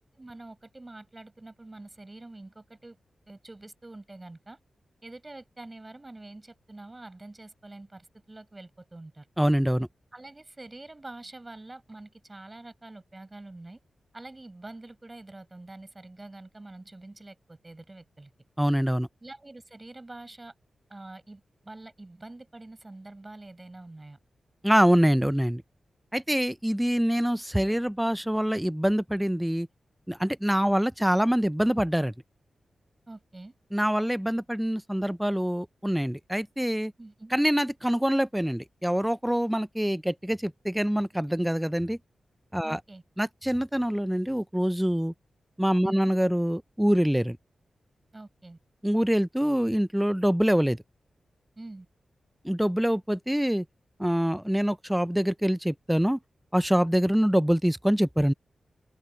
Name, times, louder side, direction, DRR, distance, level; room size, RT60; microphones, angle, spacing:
voice 1, 0.2-3.0 3.3-4.6 5.0-9.3 10.1-13.8 14.1-18.3 19.2-20.5 20.9-24.2 33.1-33.5 37.0-37.3 42.6-43.0 45.8-46.1 48.1-48.6 51.6-51.9, right 2 dB, 25° right, 7.1 m, -45 dB
voice 2, 9.4-9.9 18.6-19.1 24.6-25.6 26.1-29.7 30.1-32.1 33.7-36.9 37.3-42.0 42.5-42.8 43.2-45.1 45.6-47.4 48.8-50.8 52.4-53.6 54.0-56.2 56.5-58.3, equal, 5° right, 0.5 m, -25 dB
open air
cardioid pair, 80°, 0 cm